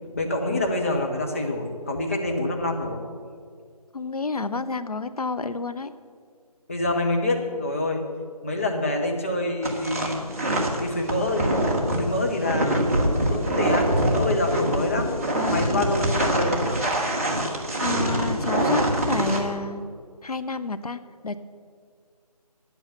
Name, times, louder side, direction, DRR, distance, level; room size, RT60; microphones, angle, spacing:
voice 1, 0.0-3.0 6.7-8.0 8.4-11.6 12.0-15.2 15.5-16.8, left 2 dB, 20° left, 1 dB, 0.9 m, -26 dB
voice 2, 3.9-5.9 15.3-15.8 17.8-19.8 20.2-21.4, left 3 dB, 65° left, 12 dB, 0.7 m, -30 dB
sound 1, 9.6-19.4, right 1 dB, 20° right, 1.1 m, -24 dB
10.5 x 8.2 x 7.0 m, 2.1 s
figure-of-eight pair, 160°, 20 cm